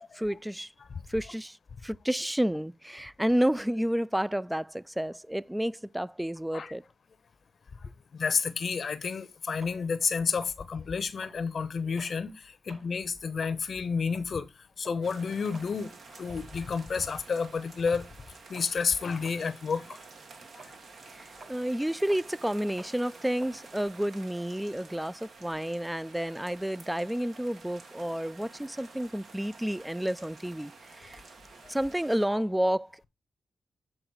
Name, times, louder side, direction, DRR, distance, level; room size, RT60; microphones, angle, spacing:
voice 1, 0.0-0.7 1.1-1.6 1.8-6.8 21.1-30.7 31.0-31.2 31.7-33.0, equal, 10° right, 0.3 m, -30 dB
voice 2, 7.8-14.5 14.8-18.1 18.5-20.0, left 5 dB, 65° left, 0.7 m, -31 dB
sound 1, 9.6-12.2 12.6-12.9 13.3-19.6 19.9-24.7, right 3 dB, 40° right, 5.1 m, -54 dB
sound 2, 15.0-32.3, right 4 dB, 70° right, 1.3 m, -51 dB
7.9 x 3.8 x 4.8 m
supercardioid pair, 50°, 0 cm